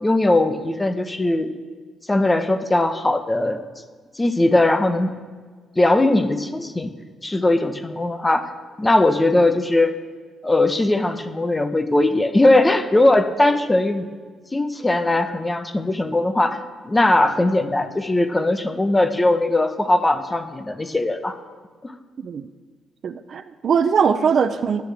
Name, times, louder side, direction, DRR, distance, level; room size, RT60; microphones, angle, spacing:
voice 1, 0.0-1.5 2.1-3.6 4.2-5.1 5.8-6.9 7.2-8.5 8.8-9.9 10.4-14.1 14.5-21.4 21.8-21.9, left 2 dB, 15° left, 8 dB, 1.0 m, -19 dB
voice 2, 23.0-24.8, right 6 dB, 55° right, 12 dB, 0.6 m, -21 dB
20.5 x 9.3 x 3.5 m, 1.5 s
cardioid pair, 100°, 0 cm